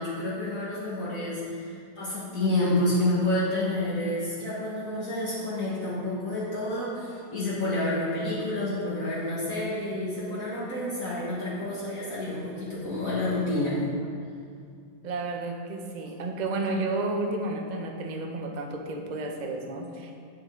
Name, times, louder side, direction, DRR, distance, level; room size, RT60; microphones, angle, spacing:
voice 1, 0.0-13.8, left 1 dB, 50° left, -9 dB, 1.9 m, -29 dB
voice 2, 15.0-20.1, right 2 dB, 85° right, 2 dB, 0.4 m, -31 dB
8.6 x 7.1 x 3.7 m, 2.3 s
omnidirectional pair, 2.0 m